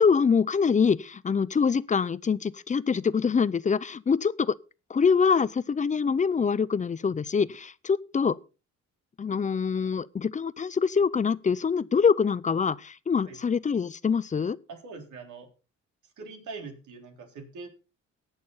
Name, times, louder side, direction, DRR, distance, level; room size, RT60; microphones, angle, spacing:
voice 1, 0.0-4.5 4.9-8.4 9.2-14.6, left 6 dB, 25° left, 0.5 m, -24 dB
voice 2, 14.7-15.5 16.2-17.7, right 4 dB, 75° right, 3.8 m, -42 dB
18.0 x 6.6 x 4.0 m
cardioid pair, 90°, 30 cm